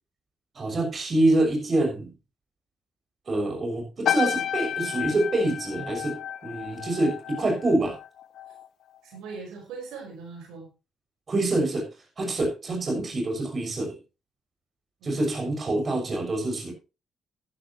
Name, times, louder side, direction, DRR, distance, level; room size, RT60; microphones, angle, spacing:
voice 1, 0.5-2.1 3.3-6.2 6.4-7.9 11.3-11.9 12.2-13.9 15.0-16.7, right 2 dB, 40° right, 2 dB, 6.4 m, -26 dB
sound 1, 4.0-8.7 8.9-9.3, left 10 dB, 65° left, 1.1 m, -31 dB
voice 2, 9.0-10.7 15.0-15.4, right 4 dB, 90° right, 1 dB, 5.1 m, -40 dB
14.0 x 12.0 x 3.1 m, 0.29 s
cardioid pair, 90°, 0 cm